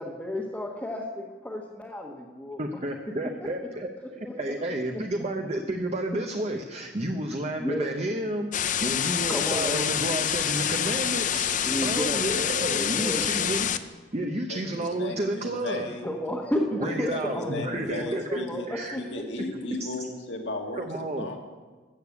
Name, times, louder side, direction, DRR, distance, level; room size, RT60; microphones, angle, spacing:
voice 1, 0.0-2.6 4.0-4.8 7.6-7.9 9.3-9.8 11.7-12.4 12.7-13.3 16.0-19.7, left 1 dB, 10° left, -4 dB, 1.1 m, -33 dB
voice 2, 2.6-3.9 4.4-13.7 14.1-15.9 16.8-19.0 20.8-21.3, right 1 dB, 35° right, 3 dB, 0.7 m, -31 dB
sound 1, 8.5-13.8, left 9 dB, 45° left, 0.5 m, -27 dB
voice 3, 14.5-16.1 16.8-18.7 19.0-21.4, left 2 dB, 70° left, 3 dB, 1.9 m, -36 dB
14.0 x 6.7 x 8.3 m, 1.4 s
head